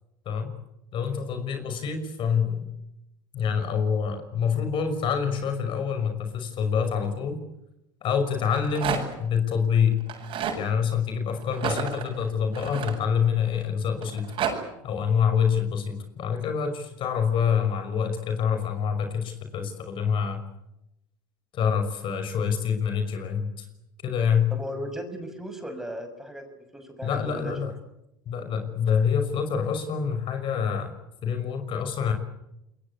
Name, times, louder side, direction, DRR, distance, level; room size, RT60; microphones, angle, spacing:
voice 1, 0.9-2.7 3.3-7.4 8.0-10.0 10.5-14.3 14.8-20.4 21.5-23.7 24.0-24.5 27.0-27.7 28.3-30.9 31.2-32.1, left 7 dB, 50° left, 7 dB, 5.8 m, -26 dB
Rattle, 8.4-9.3 10.0-10.6 11.5-13.5 14.0-14.5, right 7 dB, 50° right, 7.8 m, -31 dB
voice 2, 24.1-26.4 26.7-27.5, equal, 5° right, 6 dB, 6.1 m, -37 dB
27.5 x 22.5 x 8.3 m, 0.85 s
supercardioid pair, 100°, 11 cm